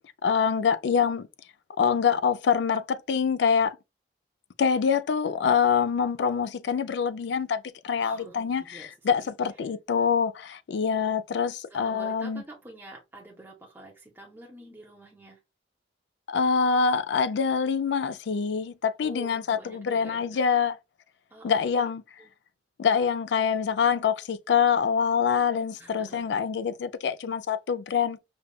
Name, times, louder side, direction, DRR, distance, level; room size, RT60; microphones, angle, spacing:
voice 1, 0.2-1.3 1.8-3.8 4.6-12.4 16.3-20.8 21.4-22.0 22.8-28.2, left 6 dB, 70° left, 0.4 m, -25 dB
voice 2, 8.0-9.2 9.6-9.7 11.7-15.4 19.0-20.4 21.3-21.9 22.2-22.3 25.8-26.3, right 1 dB, 10° right, 0.7 m, -47 dB
5.1 x 2.3 x 2.2 m
head